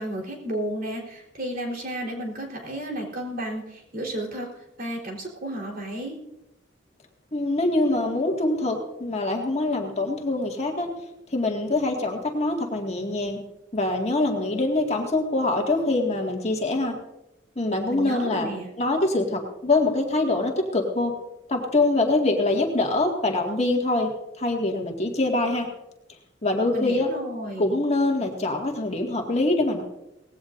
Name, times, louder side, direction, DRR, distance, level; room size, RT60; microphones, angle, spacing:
voice 1, 0.0-4.5 4.8-6.2 17.9-18.7 26.7-27.7, right 1 dB, 55° right, -1 dB, 3.9 m, -32 dB
voice 2, 7.3-10.9 11.3-13.4 13.7-16.9 17.6-18.5 18.8-21.1 21.5-24.1 24.4-25.7 26.4-27.1 27.6-29.8, left 2 dB, 35° left, 1 dB, 2.0 m, -24 dB
19.0 x 16.5 x 2.6 m, 0.92 s
head